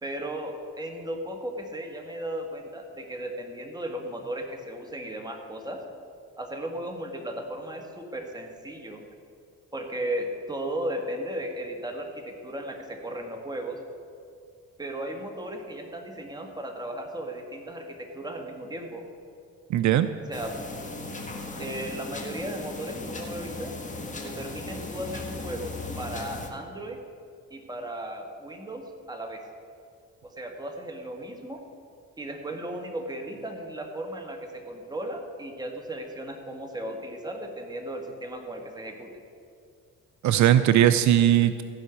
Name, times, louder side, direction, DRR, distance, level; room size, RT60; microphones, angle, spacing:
voice 1, 0.0-5.8 6.4-9.0 9.7-13.8 14.8-19.0 20.3-20.5 21.6-23.7 24.2-27.0 27.5-29.4 30.2-31.6 32.2-39.2, right 1 dB, 15° right, 2 dB, 1.8 m, -36 dB
voice 2, 19.7-20.1 40.2-41.6, right 11 dB, 70° right, 11 dB, 0.5 m, -19 dB
sound 1, 20.3-26.5, left 2 dB, 25° left, 1.6 m, -37 dB
15.0 x 5.5 x 8.1 m, 2.4 s
cardioid pair, 90°, 30 cm